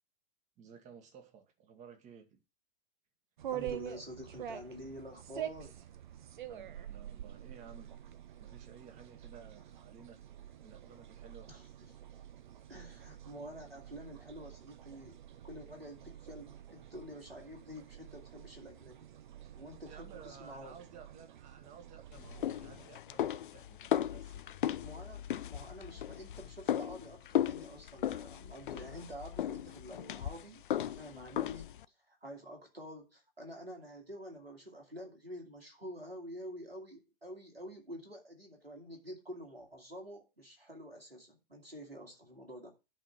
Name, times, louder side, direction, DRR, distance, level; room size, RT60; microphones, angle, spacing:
voice 1, 0.6-2.4 6.5-7.9 8.4-10.2 10.6-11.5 19.9-24.6, right 6 dB, 25° right, 1.5 m, -55 dB
sound 1, 3.4-22.9, right 11 dB, 55° right, 0.9 m, -47 dB
voice 2, 3.5-5.8 11.5-11.6 12.7-15.2 15.4-19.1 19.5-20.8 24.8-31.7 32.1-42.7, equal, 90° right, 2.5 m, -48 dB
sound 2, 22.1-31.9, left 11 dB, 60° left, 0.4 m, -36 dB
11.0 x 3.8 x 6.0 m
figure-of-eight pair, 105°, 29 cm